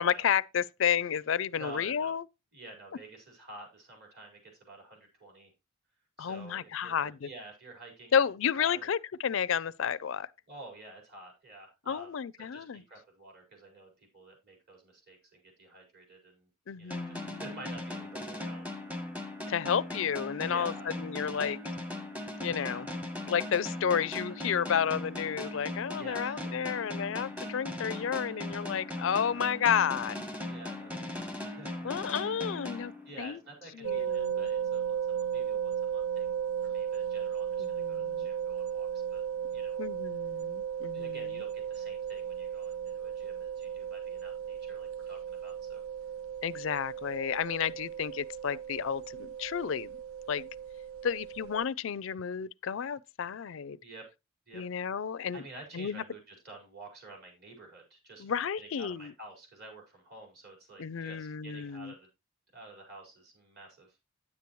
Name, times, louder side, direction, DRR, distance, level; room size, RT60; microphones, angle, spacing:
voice 1, 0.0-2.2 6.2-7.3 8.1-10.3 11.9-12.8 16.7-17.4 19.5-20.7 21.0-21.6 22.4-22.9 23.2-30.2 31.8-32.9 33.2-33.4 33.8-34.5 37.6-38.3 39.8-41.4 46.4-50.0 50.3-50.5 51.0-53.8 54.5-55.4 55.7-56.0 58.2-59.1 60.8-61.9, left 7 dB, 65° left, 0.4 m, -31 dB
voice 2, 1.6-2.2 2.5-5.5 6.2-8.2 8.5-8.9 10.5-12.1 12.4-16.5 16.8-18.8 20.5-20.9 22.4-22.9 26.0-26.9 29.1-29.5 30.4-32.0 33.0-36.3 36.6-39.2 39.5-39.8 40.9-45.8 53.8-54.0 54.5-54.6 55.3-62.1 62.5-64.0, right 2 dB, 50° right, 4.8 m, -50 dB
sound 1, 16.9-33.5, left 1 dB, 5° right, 0.9 m, -39 dB
sound 2, 33.8-51.7, right 8 dB, 75° right, 0.4 m, -35 dB
10.0 x 8.3 x 3.0 m
head